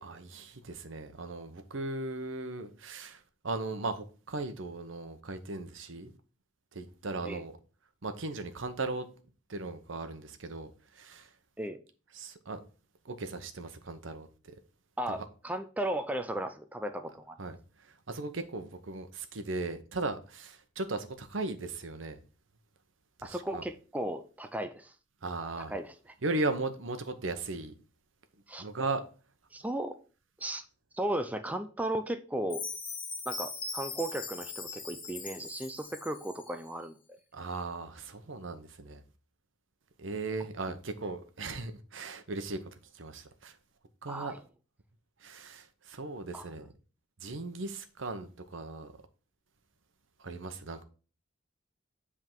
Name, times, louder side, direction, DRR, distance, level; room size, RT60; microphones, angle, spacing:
voice 1, 0.0-6.1 6.7-7.5 8.0-9.1 9.5-11.3 12.1-12.6 13.0-14.5 15.1-15.2 17.4-22.2 23.2-23.6 25.2-25.7 26.2-27.7 28.6-29.0 37.3-39.0 40.0-42.6 42.9-43.6 44.0-44.3 45.2-46.7 47.2-48.9 50.2-50.8, right 3 dB, 75° right, 0.9 m, -37 dB
voice 2, 15.0-17.4 23.2-24.9 25.7-25.9 28.5-28.7 29.5-30.0 30.4-30.6 30.9-32.6 33.3-37.0 44.1-44.4 46.3-46.5, right 1 dB, 10° right, 0.5 m, -35 dB
Chime, 32.5-36.6, left 4 dB, 25° left, 1.4 m, -40 dB
7.7 x 3.7 x 4.5 m
head